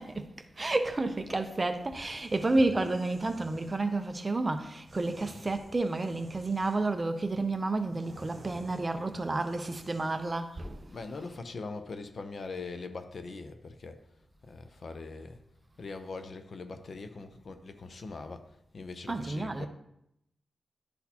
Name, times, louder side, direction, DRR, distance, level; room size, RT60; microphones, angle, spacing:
voice 1, 0.0-11.4 19.1-19.7, right 2 dB, 25° right, 0.4 m, -31 dB
sound 1, 1.9-3.8 4.9-6.9 7.3-10.2, right 1 dB, 40° right, 2.0 m, -53 dB
voice 2, 10.9-14.0 14.4-15.4 15.8-19.7, left 3 dB, 45° left, 0.5 m, -42 dB
11.5 x 4.1 x 2.8 m
wide cardioid pair, 180°, 0 cm